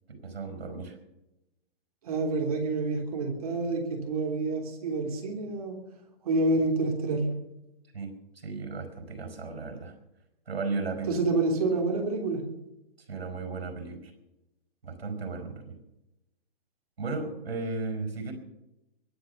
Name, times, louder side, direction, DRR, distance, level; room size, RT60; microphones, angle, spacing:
voice 1, 0.1-1.0 7.9-9.9 10.5-11.2 13.0-14.1 14.8-15.8 17.0-18.3, right 3 dB, 85° right, 6 dB, 5.1 m, -35 dB
voice 2, 2.0-5.8 6.2-7.3 11.1-12.5, right 3 dB, 40° right, 3 dB, 3.4 m, -28 dB
22.0 x 8.9 x 6.7 m, 0.91 s
hypercardioid pair, 170°, 30 cm